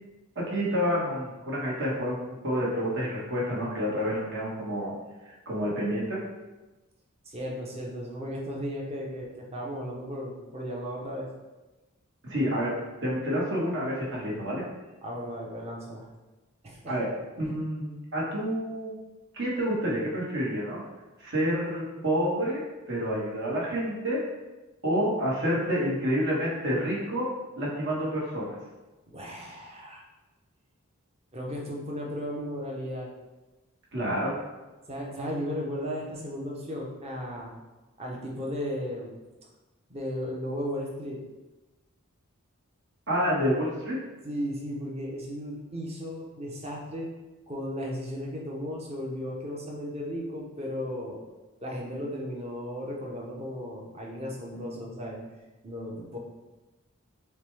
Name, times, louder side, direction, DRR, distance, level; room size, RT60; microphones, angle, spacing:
voice 1, 0.3-4.9 5.5-6.2 12.2-14.7 16.9-17.1 17.4-18.9 19.3-20.8 21.2-24.3 24.8-27.3 27.6-28.6 33.9-34.5 43.1-44.0, equal, 60° right, -5 dB, 1.3 m, -28 dB
voice 2, 7.3-11.3 15.0-16.1 16.6-17.0 29.1-30.0 31.3-33.1 34.9-37.5 38.0-39.1 39.9-41.2 44.2-47.1 47.5-51.2 51.6-55.2 55.6-56.2, equal, 30° right, -2 dB, 0.8 m, -35 dB
6.4 x 2.2 x 3.3 m, 1.1 s
head